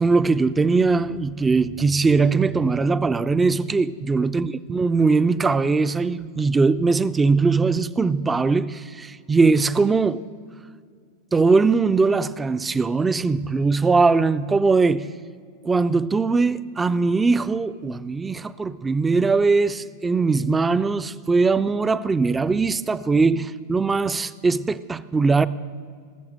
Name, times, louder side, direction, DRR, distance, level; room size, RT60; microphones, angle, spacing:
voice 1, 0.0-10.2 11.3-15.1 15.6-25.5, right 4 dB, 15° right, 0.4 m, -20 dB
17.5 x 7.2 x 7.8 m
figure-of-eight pair, 90°, 0 cm